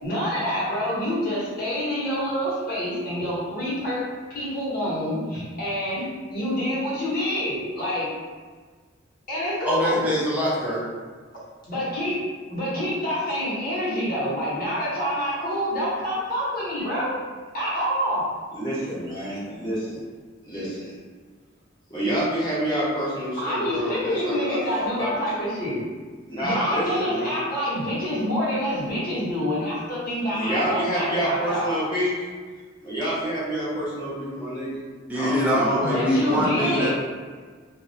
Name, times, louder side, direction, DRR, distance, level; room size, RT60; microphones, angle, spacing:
voice 1, 0.0-4.0 4.3-8.1 9.3-10.0 11.7-12.2 12.5-17.1 17.5-18.3 23.4-25.8 26.4-31.8 35.8-36.9, equal, 50° left, -8 dB, 0.9 m, -27 dB
voice 2, 9.7-10.8 35.1-36.9, equal, 10° right, -6 dB, 0.5 m, -23 dB
voice 3, 18.5-20.0 20.4-20.9 21.9-25.1 26.3-27.4 30.3-32.2 32.8-34.8 35.1-36.8, equal, 20° left, -9 dB, 0.8 m, -28 dB
2.3 x 2.0 x 2.6 m, 1.5 s
head